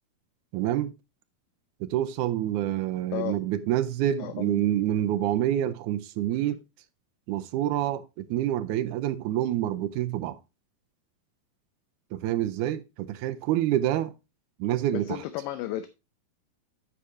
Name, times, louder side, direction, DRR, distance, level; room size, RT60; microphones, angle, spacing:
voice 1, 0.5-0.9 1.8-6.6 7.3-10.4 12.1-14.1 14.6-15.2, right 12 dB, 85° right, 1.8 m, -27 dB
voice 2, 4.2-4.6 14.9-15.9, left 14 dB, 80° left, 2.3 m, -33 dB
14.0 x 4.9 x 2.6 m
omnidirectional pair, 4.2 m